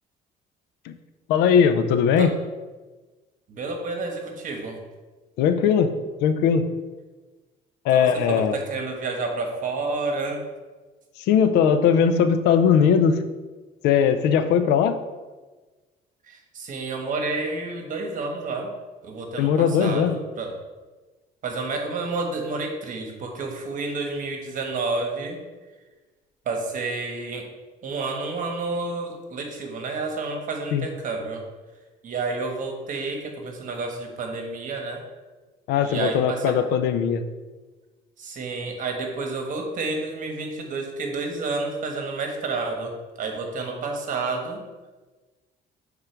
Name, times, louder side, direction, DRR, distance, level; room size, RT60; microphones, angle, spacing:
voice 1, 1.3-2.3 5.4-6.7 7.8-8.6 11.2-13.2 13.8-15.0 19.4-20.2 30.7-30.9 35.7-37.2, left 7 dB, 85° left, 10 dB, 0.5 m, -19 dB
voice 2, 3.5-4.8 7.9-10.5 16.2-18.7 19.0-20.5 21.4-25.4 26.4-27.5 27.8-31.4 32.0-35.0 35.8-36.6 38.2-44.6, right 3 dB, 50° right, 3 dB, 1.3 m, -30 dB
6.8 x 3.7 x 4.5 m, 1.3 s
cardioid pair, 110°, 17 cm